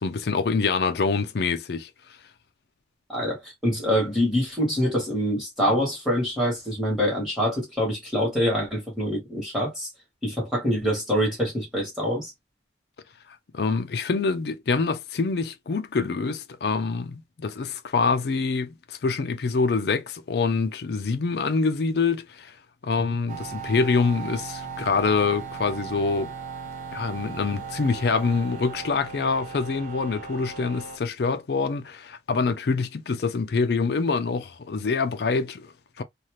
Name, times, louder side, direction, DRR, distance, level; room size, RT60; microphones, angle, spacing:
voice 1, 0.0-1.9 13.5-22.5 22.8-26.3 26.9-36.0, left 4 dB, 60° left, 0.4 m, -25 dB
voice 2, 3.1-9.9 10.2-12.3, equal, 5° right, 1.4 m, -25 dB
sound 1, 23.3-31.0, right 5 dB, 45° right, 0.6 m, -37 dB
2.7 x 2.4 x 3.1 m
head